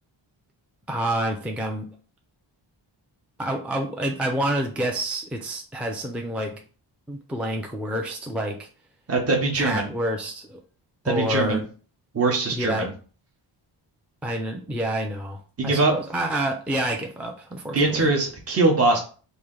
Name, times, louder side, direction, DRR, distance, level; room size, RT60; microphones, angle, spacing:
voice 1, 0.9-1.9 3.4-6.6 7.1-8.7 9.5-10.6 11.0-11.7 12.5-12.9 14.2-18.1, right 1 dB, 5° right, 2 dB, 0.4 m, -28 dB
voice 2, 9.1-9.9 11.0-11.6 12.1-12.9 15.6-15.9 17.7-19.0, right 3 dB, 30° right, 0 dB, 0.9 m, -22 dB
3.1 x 2.7 x 3.7 m, 0.39 s
wide cardioid pair, 100°, 48 cm